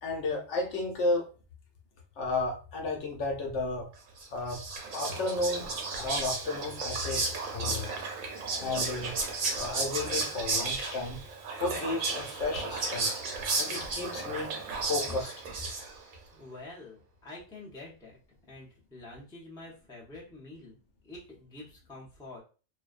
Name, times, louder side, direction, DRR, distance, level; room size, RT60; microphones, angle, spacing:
voice 1, 0.0-1.3 2.2-3.9 4.3-4.6 4.9-7.9 8.6-9.1 9.5-11.2 11.6-13.2 13.5-14.5 14.9-15.3, left 2 dB, 65° left, 0 dB, 0.9 m, -33 dB
Whispering, 4.2-16.1, right 3 dB, 90° right, 1.1 m, -33 dB
voice 2, 16.3-18.1 18.5-20.8 21.0-22.4, left 2 dB, 5° left, -4 dB, 0.4 m, -47 dB
2.5 x 2.1 x 2.4 m, 0.35 s
omnidirectional pair, 1.4 m